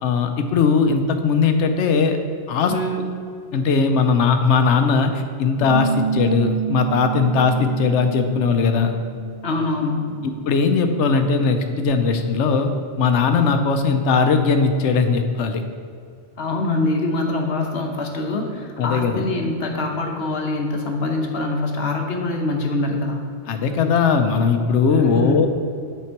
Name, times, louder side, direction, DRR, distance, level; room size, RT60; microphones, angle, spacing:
voice 1, 0.0-2.2 2.5-2.7 3.5-9.0 10.2-12.7 13.0-15.6 18.8-19.2 23.5-25.5, left 5 dB, 85° left, 7 dB, 0.9 m, -19 dB
voice 2, 2.7-3.1 9.4-10.2 16.4-23.3 24.9-25.4, left 2 dB, 60° left, 2 dB, 1.1 m, -24 dB
Bass guitar, 5.6-11.9, right 7 dB, 55° right, 2.3 m, -29 dB
8.5 x 4.4 x 4.5 m, 2.3 s
omnidirectional pair, 1.2 m